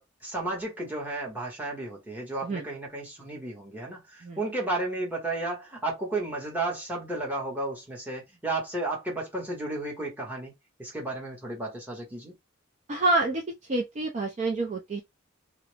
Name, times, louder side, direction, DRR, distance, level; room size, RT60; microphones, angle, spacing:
voice 1, 0.0-10.5 10.8-12.3, right 2 dB, 10° right, 1.0 m, -33 dB
voice 2, 12.9-13.4 13.7-15.0, right 2 dB, 35° right, 0.4 m, -27 dB
2.4 x 2.0 x 3.1 m
head